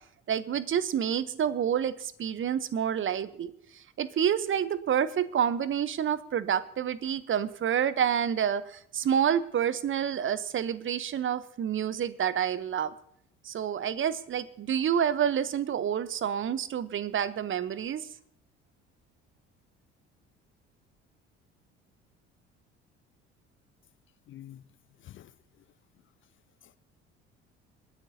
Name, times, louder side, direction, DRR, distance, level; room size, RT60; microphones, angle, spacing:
voice 1, 0.3-12.9 13.4-18.1, right 8 dB, 35° right, 0.8 m, -28 dB
voice 2, 24.3-24.6 25.0-25.6 26.6-26.8, left 12 dB, 35° left, 0.5 m, -49 dB
27.0 x 10.0 x 2.8 m
figure-of-eight pair, 55°, 35 cm